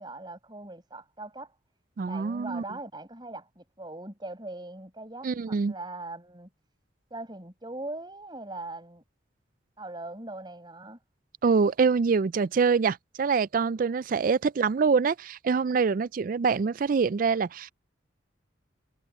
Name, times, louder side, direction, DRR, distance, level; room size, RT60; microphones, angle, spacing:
voice 1, 0.0-1.5 2.1-6.5 7.1-9.0 9.8-11.0, right 2 dB, 25° right, 6.2 m, -40 dB
voice 2, 2.0-2.6 5.2-5.7 11.4-17.7, right 5 dB, 45° right, 0.3 m, -25 dB
head